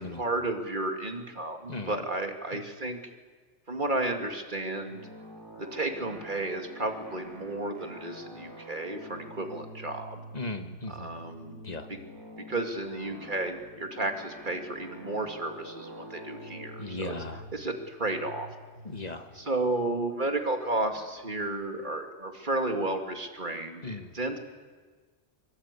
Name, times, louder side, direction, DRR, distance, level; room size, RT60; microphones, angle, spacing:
voice 1, 0.2-3.0 3.7-5.1 5.6-10.2 10.9-11.6 11.9-12.0 12.5-17.2 17.5-18.5 19.3-24.4, right 2 dB, 40° right, 4 dB, 2.5 m, -32 dB
sound 1, 4.9-21.4, equal, 75° right, 6.9 m, -47 dB
voice 2, 10.3-11.2 11.6-11.9 16.8-17.4 18.8-19.3 23.8-24.1, left 3 dB, 35° left, 7 dB, 1.6 m, -37 dB
23.5 x 23.5 x 8.3 m, 1.4 s
omnidirectional pair, 1.2 m